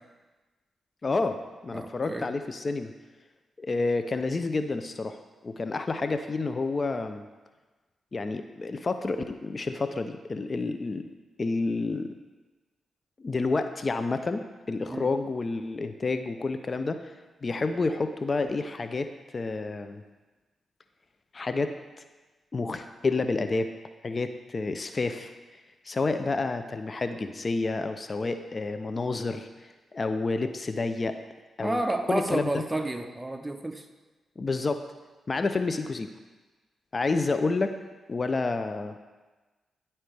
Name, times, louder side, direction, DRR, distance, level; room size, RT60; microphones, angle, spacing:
voice 1, 1.0-2.9 3.6-7.2 8.1-11.1 11.4-12.1 13.2-17.1 17.4-20.0 21.3-21.7 22.5-23.7 24.0-25.3 25.8-31.2 31.6-31.8 32.1-32.6 34.4-34.8 35.3-36.1 36.9-37.8 38.1-39.0, left 3 dB, 45° left, 9 dB, 0.4 m, -29 dB
voice 2, 1.7-2.3 14.9-15.1 31.6-33.9, right 1 dB, 15° right, 6 dB, 0.7 m, -30 dB
10.5 x 4.3 x 3.3 m, 1.2 s
supercardioid pair, 45°, 0 cm